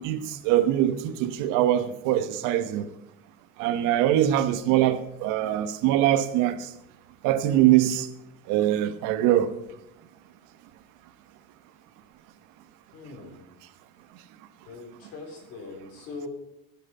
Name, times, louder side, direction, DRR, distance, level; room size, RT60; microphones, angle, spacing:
voice 1, 0.0-2.9 3.6-6.6 7.2-8.1 8.5-9.5, right 12 dB, 75° right, 1.2 m, -23 dB
voice 2, 12.9-13.4 14.7-16.3, left 3 dB, 50° left, 4.0 m, -41 dB
15.5 x 8.0 x 5.5 m
cardioid pair, 170°, 32 cm